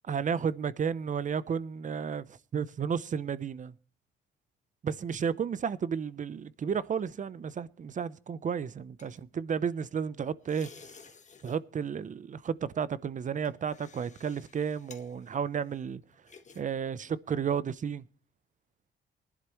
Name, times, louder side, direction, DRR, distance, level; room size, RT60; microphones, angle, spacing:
voice 1, 0.0-3.7 4.8-11.1 11.4-16.0 16.5-18.1, right 7 dB, 40° right, 0.7 m, -32 dB
sound 1, 8.7-10.0 10.4-11.6 11.9-12.2 12.8-16.6 17.0-17.2, left 5 dB, 35° left, 1.5 m, -55 dB
19.5 x 11.0 x 3.1 m
cardioid pair, 90°, 20 cm